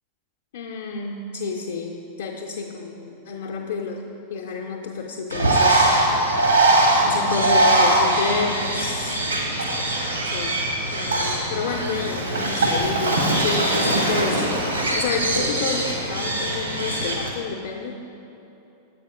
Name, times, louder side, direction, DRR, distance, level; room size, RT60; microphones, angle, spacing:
voice 1, 0.5-4.0 4.3-5.9 7.0-9.2 10.2-10.6 10.9-18.0, left 5 dB, 60° left, -2 dB, 0.5 m, -29 dB
Bird, 5.3-17.3, right 1 dB, 80° right, 1.1 m, -21 dB
7.7 x 5.1 x 4.8 m, 3.0 s
figure-of-eight pair, 90°, 0 cm